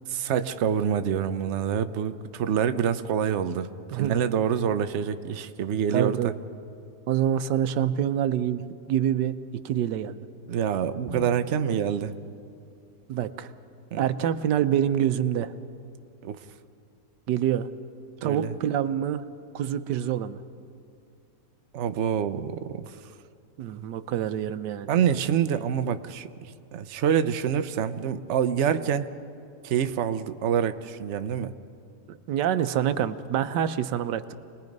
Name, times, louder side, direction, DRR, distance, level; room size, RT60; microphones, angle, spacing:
voice 1, 0.1-3.7 4.0-6.3 10.5-12.1 13.9-14.0 16.2-16.4 18.2-18.5 21.7-23.0 24.9-26.3 26.7-29.1 29.6-31.5, right 8 dB, 55° right, 11 dB, 0.9 m, -26 dB
voice 2, 5.9-6.3 7.1-9.3 9.6-10.3 13.1-13.5 14.0-15.5 17.3-17.7 18.2-19.2 19.5-20.4 23.6-24.9 32.1-34.2, right 10 dB, 80° right, 12 dB, 1.4 m, -26 dB
Drum, 11.1-13.1, equal, 30° right, 2.0 m, -43 dB
28.0 x 20.5 x 5.3 m, 2.5 s
omnidirectional pair, 1.9 m